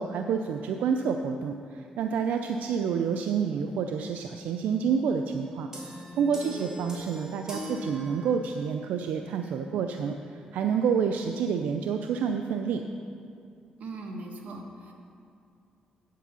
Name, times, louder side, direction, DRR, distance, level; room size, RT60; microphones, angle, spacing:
voice 1, 0.0-5.7 6.2-10.1 10.5-12.8, right 6 dB, 85° right, 6 dB, 0.4 m, -28 dB
sound 1, 5.7-8.7, left 1 dB, 25° right, 3.0 m, -41 dB
voice 2, 13.8-14.9, right 2 dB, 70° right, 2 dB, 1.5 m, -40 dB
8.9 x 7.5 x 6.9 m, 2.4 s
cardioid pair, 85°, 3 cm